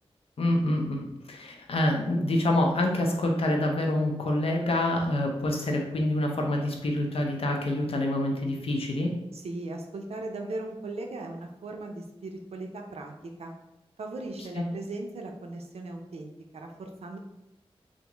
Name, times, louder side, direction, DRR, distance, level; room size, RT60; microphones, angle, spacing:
voice 1, 0.4-9.1, left 1 dB, 70° left, 1 dB, 0.6 m, -26 dB
voice 2, 9.3-13.5 14.0-17.2, right 2 dB, 85° right, 3 dB, 0.5 m, -38 dB
3.5 x 2.5 x 3.0 m, 0.91 s
wide cardioid pair, 100°, 10 cm